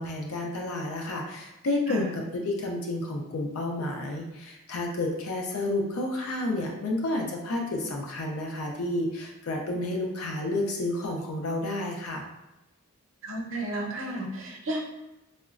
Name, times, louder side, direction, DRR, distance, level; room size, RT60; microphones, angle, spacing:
voice 1, 0.0-12.2, left 2 dB, 75° left, 0 dB, 0.4 m, -30 dB
voice 2, 13.2-14.8, right 1 dB, 60° right, 0 dB, 0.6 m, -32 dB
3.8 x 2.1 x 2.4 m, 0.99 s
head